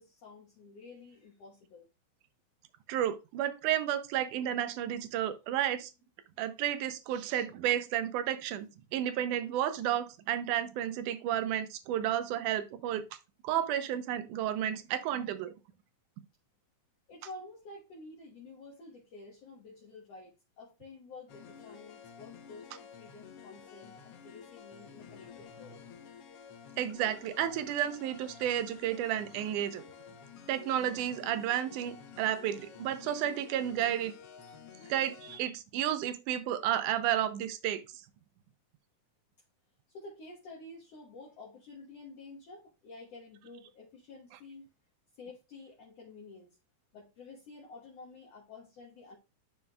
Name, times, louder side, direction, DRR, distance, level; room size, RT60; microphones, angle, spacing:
voice 1, 0.0-1.9 17.1-25.8 39.9-44.7 45.2-46.6 46.9-49.2, left 3 dB, 60° left, -3 dB, 2.2 m, -50 dB
voice 2, 2.9-5.9 6.4-8.7 8.9-13.0 13.4-15.5 26.8-29.8 30.5-34.1 34.9-37.8, right 11 dB, 80° right, 10 dB, 2.2 m, -32 dB
sound 1, 21.3-35.4, left 7 dB, 75° left, 1.3 m, -51 dB
10.5 x 4.5 x 2.3 m, 0.28 s
omnidirectional pair, 3.7 m